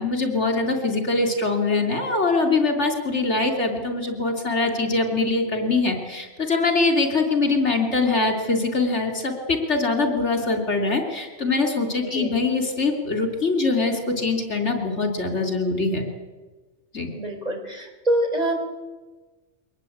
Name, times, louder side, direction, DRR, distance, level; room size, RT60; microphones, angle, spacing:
voice 1, 0.0-16.0 16.9-17.1, left 3 dB, 80° left, 3 dB, 3.7 m, -23 dB
voice 2, 17.1-18.5, right 1 dB, 35° right, 3 dB, 4.9 m, -25 dB
23.5 x 19.5 x 8.8 m, 1.3 s
omnidirectional pair, 1.2 m